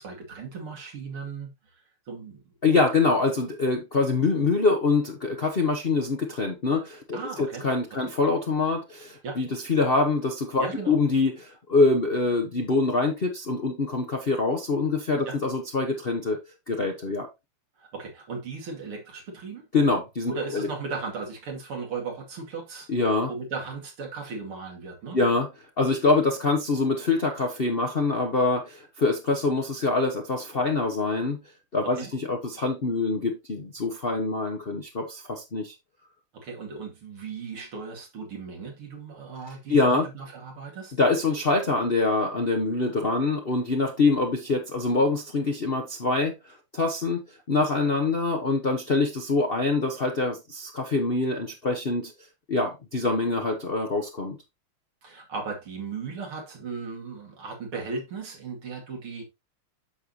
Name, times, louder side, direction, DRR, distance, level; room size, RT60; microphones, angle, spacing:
voice 1, 0.0-2.4 7.1-7.6 7.9-8.1 9.2-9.4 10.6-11.0 15.3-15.4 17.8-19.7 20.3-22.9 23.3-25.2 31.8-32.1 36.3-40.9 55.0-59.2, right 4 dB, 80° right, 3.3 m, -36 dB
voice 2, 2.6-16.4 16.7-17.3 19.7-20.7 22.9-23.3 25.1-25.5 25.8-31.4 31.7-35.7 39.7-40.0 41.0-52.1 52.5-54.4, left 3 dB, 40° left, 0.9 m, -25 dB
8.8 x 6.8 x 2.8 m
omnidirectional pair, 2.4 m